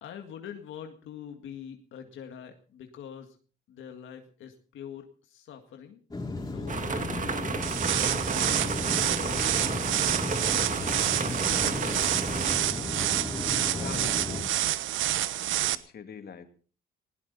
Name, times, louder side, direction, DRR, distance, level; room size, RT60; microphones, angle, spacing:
voice 1, 0.0-3.4 3.7-6.0 6.4-7.6 8.5-10.0 10.3-12.1, left 8 dB, 80° left, 4 dB, 1.9 m, -45 dB
sound 1, 6.1-14.4, left 2 dB, 20° left, 4.8 m, -34 dB
sound 2, 6.7-12.5, right 5 dB, 40° right, 2.3 m, -33 dB
sound 3, 7.6-15.7, right 13 dB, 80° right, 1.0 m, -28 dB
voice 2, 13.7-14.6 15.4-16.5, left 7 dB, 55° left, 7 dB, 2.5 m, -44 dB
19.5 x 16.5 x 4.1 m, 0.39 s
cardioid pair, 90°, 20 cm